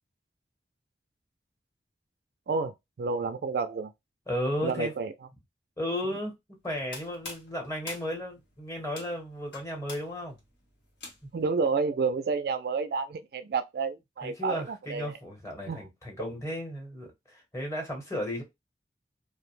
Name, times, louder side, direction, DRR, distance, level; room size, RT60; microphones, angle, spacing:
voice 1, 2.5-3.9 4.6-5.1 11.3-15.2 15.7-15.8, right 4 dB, 55° right, 0.3 m, -30 dB
voice 2, 4.3-4.9 5.8-6.3 6.6-10.4 14.2-18.4, equal, 15° left, 1.0 m, -34 dB
sound 1, 6.6-11.5, left 2 dB, 80° left, 1.2 m, -46 dB
2.5 x 2.1 x 3.0 m
head